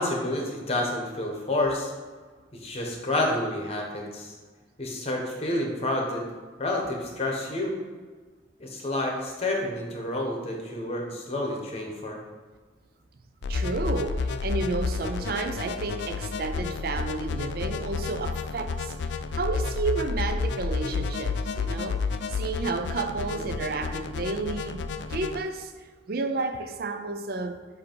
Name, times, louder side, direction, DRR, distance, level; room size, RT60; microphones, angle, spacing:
voice 1, 0.0-1.9 2.5-4.3 4.8-6.2 6.6-7.8 8.6-12.2 23.1-23.5, left 1 dB, 35° left, 0 dB, 1.0 m, -29 dB
sound 1, 13.4-25.4, left 4 dB, 65° left, 0.3 m, -31 dB
voice 2, 13.5-22.0 22.3-25.7 26.1-27.7, right 3 dB, 50° right, 7 dB, 0.5 m, -31 dB
7.7 x 2.7 x 4.5 m, 1.5 s
head